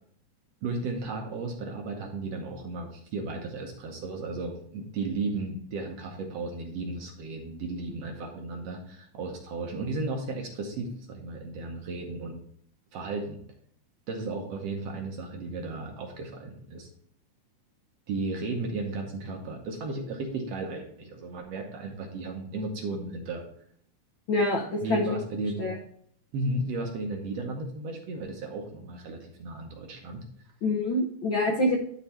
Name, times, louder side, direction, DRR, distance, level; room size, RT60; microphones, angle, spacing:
voice 1, 0.6-12.4 12.9-13.4 14.1-16.9 18.1-23.4 24.8-25.7 26.3-30.5, right 3 dB, 65° right, 2 dB, 1.7 m, -34 dB
voice 2, 24.3-25.1 25.6-25.8 30.6-31.8, left 1 dB, 75° left, 1 dB, 1.1 m, -26 dB
11.0 x 4.1 x 4.2 m, 0.64 s
omnidirectional pair, 3.6 m